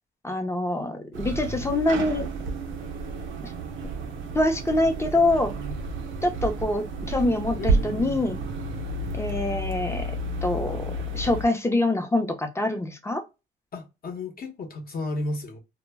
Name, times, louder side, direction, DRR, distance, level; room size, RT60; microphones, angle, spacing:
voice 1, 0.2-2.3 3.4-3.5 4.3-5.5 6.2-8.4 9.2-10.1 10.4-13.2, left 2 dB, 15° left, 0.5 m, -25 dB
sound 1, 1.1-11.5, right 2 dB, 80° right, 0.6 m, -31 dB
voice 2, 7.6-8.3 13.7-15.6, left 2 dB, 50° left, 0.8 m, -34 dB
2.1 x 2.0 x 3.3 m
cardioid pair, 90°, 20 cm